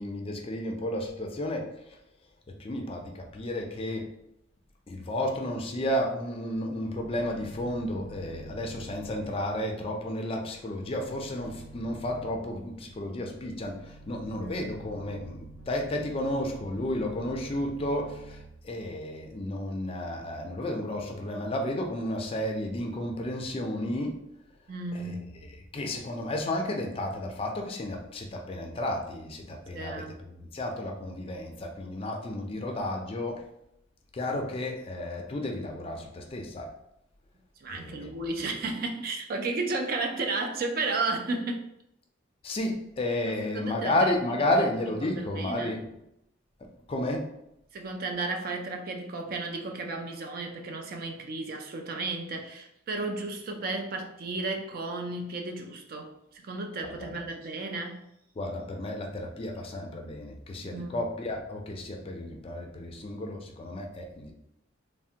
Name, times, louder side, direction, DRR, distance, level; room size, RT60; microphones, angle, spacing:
voice 1, 0.0-2.0 2.5-4.1 4.9-24.2 24.9-25.2 25.4-33.5 34.1-36.7 37.7-38.1 42.4-45.9 46.6-47.3 56.8-57.2 58.4-64.3, left 1 dB, 30° left, 2 dB, 0.4 m, -32 dB
sound 1, 6.9-19.4, right 2 dB, 90° left, 0.5 m, -49 dB
voice 2, 14.4-14.7 24.7-25.3 29.7-30.1 37.6-41.7 43.3-44.1 44.6-44.7 45.0-45.8 47.7-58.0 60.6-61.1, right 3 dB, 50° right, 3 dB, 0.4 m, -33 dB
3.2 x 2.1 x 2.7 m, 0.80 s
head